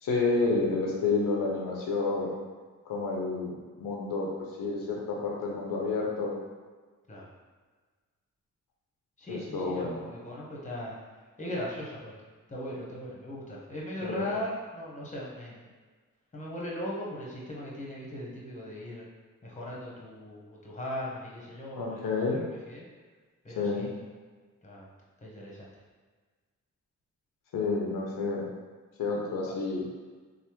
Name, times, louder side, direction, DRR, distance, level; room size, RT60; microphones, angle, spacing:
voice 1, 0.0-2.3 2.9-4.3 4.6-6.4 9.3-10.0 14.0-14.3 21.8-22.4 23.6-23.9 27.5-28.5 29.0-29.8, left 3 dB, 85° left, -2 dB, 0.6 m, -29 dB
voice 2, 9.2-11.0 11.4-12.1 12.5-15.7 16.3-19.1 19.4-22.1 22.7-22.9 23.4-23.9 24.6-24.9 25.2-25.7, left 1 dB, 25° left, -4 dB, 0.9 m, -38 dB
3.2 x 2.1 x 2.9 m, 1.4 s
cardioid pair, 60°, 32 cm